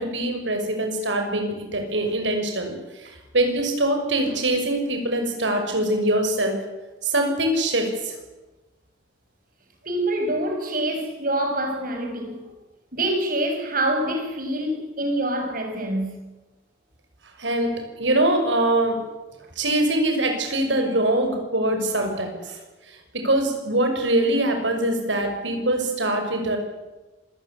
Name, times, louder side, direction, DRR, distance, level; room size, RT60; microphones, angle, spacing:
voice 1, 0.0-6.6 7.0-8.2 17.4-19.0 19.6-22.6 22.9-26.6, right 1 dB, 85° right, 6.3 m, -23 dB
voice 2, 9.8-12.4 12.9-16.2, right 1 dB, 50° right, 6.0 m, -26 dB
26.5 x 17.0 x 9.9 m
head